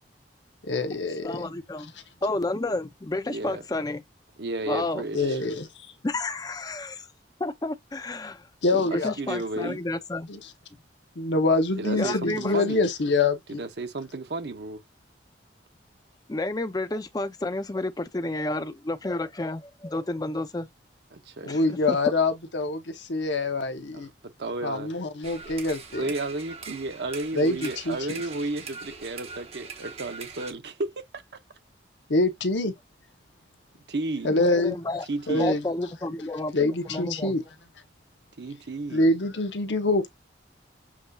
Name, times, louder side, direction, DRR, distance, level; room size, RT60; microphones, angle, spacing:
voice 1, 0.7-1.4 5.1-5.7 8.6-9.1 10.3-10.4 11.2-13.6 21.4-24.1 24.6-26.1 27.3-28.0 32.1-32.7 34.2-34.8 35.3-35.6 36.5-37.4 38.9-40.1, left 2 dB, 85° left, 0.9 m, -25 dB
voice 2, 1.2-1.9 2.2-4.0 4.7-5.0 6.0-7.1 7.4-8.5 8.7-10.3 11.9-12.6 16.3-20.7 21.5-22.1 34.3-37.4, left 2 dB, 20° left, 0.5 m, -31 dB
voice 3, 3.3-3.6 4.4-5.4 9.2-9.8 11.8-12.9 13.5-14.8 21.1-21.7 23.9-24.9 26.0-31.4 33.9-34.3 35.1-35.6 38.4-39.1, right 2 dB, 70° right, 0.8 m, -33 dB
sound 1, 25.2-30.5, right 5 dB, 35° right, 0.8 m, -41 dB
7.1 x 2.7 x 2.4 m
head